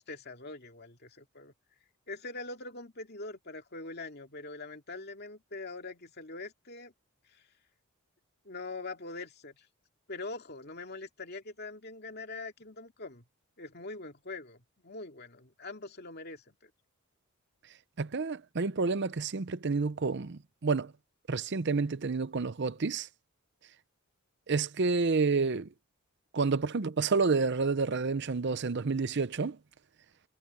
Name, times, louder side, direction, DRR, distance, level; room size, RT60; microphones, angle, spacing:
voice 1, 0.0-1.5 2.1-6.9 7.3-7.4 8.4-9.7 10.1-13.2 13.6-16.7, left 3 dB, 50° left, 2.5 m, -43 dB
voice 2, 18.0-20.9 21.3-23.1 24.5-25.7 26.3-29.6, right 4 dB, 55° right, 0.7 m, -29 dB
head